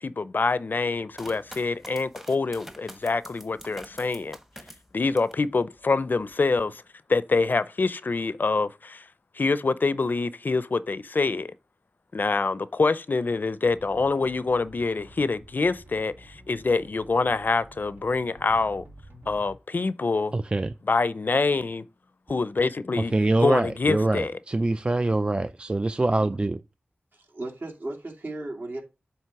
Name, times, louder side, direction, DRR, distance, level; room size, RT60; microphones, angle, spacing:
voice 1, 0.0-4.4 4.9-6.8 7.1-9.0 9.3-11.5 12.1-18.8 19.3-20.3 20.9-21.8 22.3-23.1 23.4-24.3, left 3 dB, 55° left, 0.5 m, -25 dB
sound 1, 1.1-5.4 5.9-6.5, equal, 10° right, 1.0 m, -46 dB
sound 2, 13.6-19.6, equal, 75° right, 1.7 m, -50 dB
voice 2, 20.3-20.7 23.1-26.6, right 2 dB, 25° right, 0.3 m, -24 dB
voice 3, 27.1-28.8, right 2 dB, 60° right, 2.4 m, -35 dB
7.6 x 3.2 x 5.8 m
wide cardioid pair, 55°, 4 cm